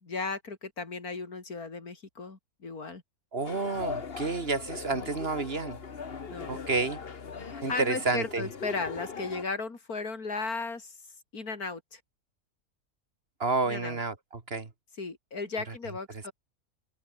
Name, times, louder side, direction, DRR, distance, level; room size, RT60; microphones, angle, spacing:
voice 1, 0.0-3.0 6.3-6.6 7.4-11.0 11.3-12.0 13.7-14.0 15.0-16.3, left 4 dB, 90° left, 3.8 m, -36 dB
voice 2, 3.3-5.8 6.5-7.0 7.6-8.4 13.4-14.7, right 3 dB, 45° right, 2.2 m, -30 dB
sound 1, 3.5-9.4, left 5 dB, 45° left, 1.5 m, -40 dB
open air
omnidirectional pair, 1.5 m